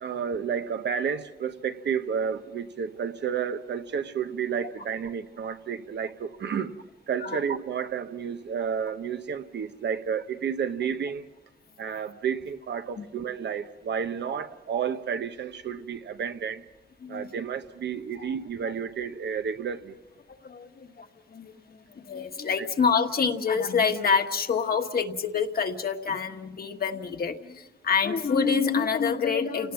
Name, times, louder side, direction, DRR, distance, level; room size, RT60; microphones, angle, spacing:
voice 1, 0.0-6.7 7.1-11.3 11.8-16.6 17.1-20.0 22.6-22.7, right 7 dB, 85° right, 1.0 m, -31 dB
voice 2, 17.0-17.3 18.2-18.4 18.6-18.7 20.3-29.7, left 6 dB, 60° left, 1.4 m, -27 dB
29.5 x 18.5 x 5.8 m
wide cardioid pair, 110°, 18 cm